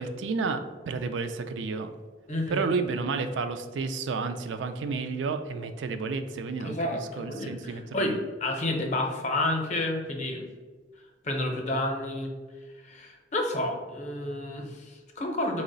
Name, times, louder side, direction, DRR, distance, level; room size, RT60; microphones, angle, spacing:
voice 1, 0.0-1.9 2.5-8.2, right 4 dB, 75° right, 8 dB, 0.3 m, -31 dB
voice 2, 2.3-2.7 6.6-8.1 8.4-10.4 11.2-12.3 12.8-15.6, left 1 dB, 40° left, 2 dB, 0.6 m, -30 dB
4.6 x 2.1 x 3.8 m, 1.4 s
head